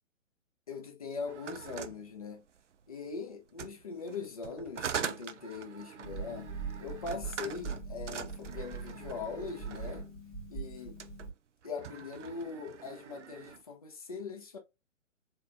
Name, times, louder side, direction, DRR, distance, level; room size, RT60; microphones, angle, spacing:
voice 1, 0.7-2.4 2.9-6.5 6.8-10.1 10.5-11.0 11.6-14.6, left 4 dB, 30° left, 0.5 m, -41 dB
sound 1, 1.3-2.8 3.5-10.1 10.8-11.3 11.6-13.6, right 7 dB, 65° right, 0.5 m, -43 dB
Harp, 6.0-11.3, right 4 dB, ahead, 1.1 m, -42 dB
3.6 x 2.7 x 2.5 m
figure-of-eight pair, 135°, 40 cm